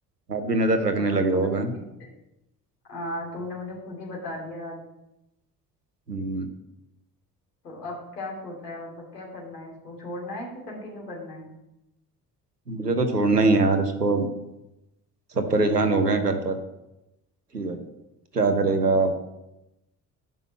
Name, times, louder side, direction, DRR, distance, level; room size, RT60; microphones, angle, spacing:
voice 1, 0.3-1.7 6.1-6.5 12.7-14.3 15.3-16.6 17.5-17.8 18.3-19.1, right 3 dB, 90° right, 7 dB, 0.9 m, -22 dB
voice 2, 1.0-1.8 2.9-4.8 7.6-11.5, left 1 dB, 80° left, -2 dB, 2.6 m, -37 dB
10.5 x 5.5 x 7.6 m, 0.92 s
figure-of-eight pair, 50°, 46 cm